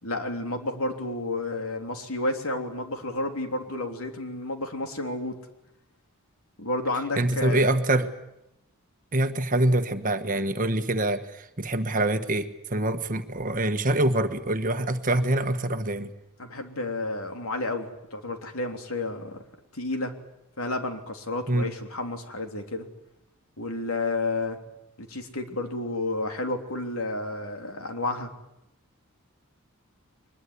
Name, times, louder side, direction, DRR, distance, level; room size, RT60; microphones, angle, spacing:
voice 1, 0.0-5.4 6.6-7.7 9.7-9.8 16.4-19.4 19.7-20.1 20.6-22.9 23.6-24.6 25.0-28.3, left 2 dB, 70° left, 5 dB, 3.4 m, -31 dB
voice 2, 7.2-8.1 9.1-16.1 21.5-21.7, right 1 dB, 35° right, 8 dB, 1.3 m, -25 dB
23.0 x 21.5 x 9.8 m, 0.84 s
head